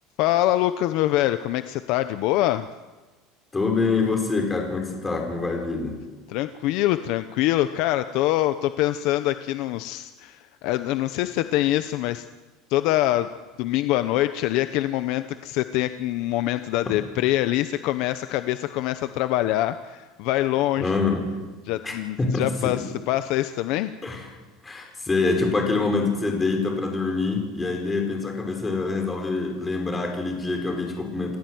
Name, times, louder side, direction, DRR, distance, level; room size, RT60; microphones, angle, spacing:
voice 1, 0.2-2.7 6.3-12.2 12.7-13.3 13.6-20.9 21.7-23.9, left 15 dB, 50° left, 11 dB, 0.9 m, -24 dB
voice 2, 3.5-6.0 16.9-17.0 20.8-21.2 21.8-22.8 24.0-24.3 24.6-31.4, left 3 dB, 10° left, 2 dB, 4.8 m, -25 dB
29.0 x 16.0 x 9.5 m, 1.2 s
cardioid pair, 180°, 0 cm